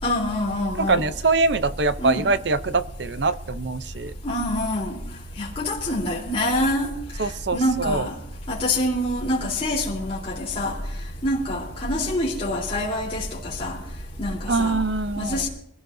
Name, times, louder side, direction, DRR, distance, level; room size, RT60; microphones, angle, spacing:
voice 1, 0.0-1.1 2.0-2.2 4.2-5.0 5.4-6.9 7.5-8.1 8.5-10.8 11.2-13.8 14.2-14.8 15.2-15.5, left 1 dB, 30° left, -6 dB, 3.6 m, -25 dB
voice 2, 0.8-4.1 7.2-8.1 14.5-15.4, right 3 dB, 65° right, 13 dB, 0.7 m, -23 dB
24.0 x 15.5 x 2.7 m, 0.78 s
head